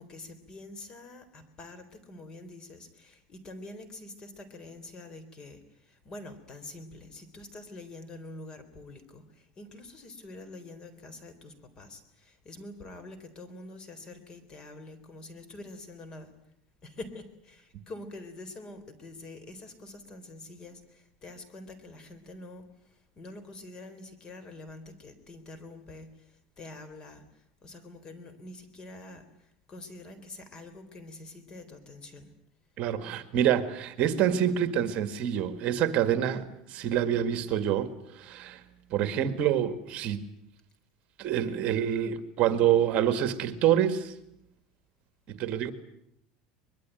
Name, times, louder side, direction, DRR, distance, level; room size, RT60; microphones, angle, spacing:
voice 1, 0.0-16.3 16.8-22.7 23.2-27.2 27.6-29.3 29.7-32.3, left 2 dB, 30° left, 12 dB, 3.8 m, -46 dB
voice 2, 32.8-38.6 38.9-40.2 41.2-44.1 45.3-45.7, right 10 dB, 45° right, 10 dB, 2.0 m, -27 dB
24.0 x 22.0 x 9.2 m, 0.76 s
supercardioid pair, 140°, 3 cm